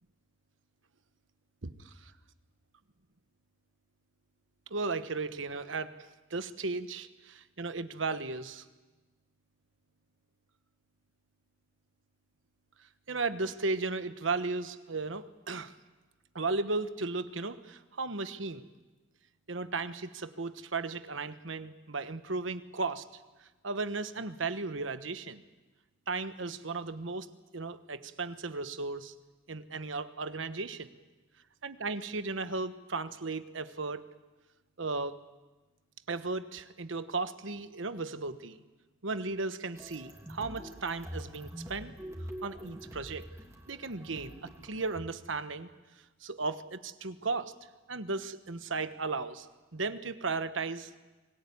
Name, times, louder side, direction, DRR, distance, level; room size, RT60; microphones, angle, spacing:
voice 1, 1.6-2.1 4.7-8.6 13.1-15.7 16.3-18.7 19.5-23.0 23.4-25.4 26.1-27.3 27.5-29.1 29.5-30.9 31.6-34.1 34.8-35.2 36.1-38.6 39.0-41.9 42.4-43.3 43.7-45.7 46.2-47.5 47.9-49.5 49.7-50.9, right 3 dB, 85° right, 11 dB, 1.2 m, -35 dB
sound 1, 39.7-45.0, equal, 15° right, 3.0 m, -45 dB
25.0 x 19.5 x 9.6 m, 1.2 s
head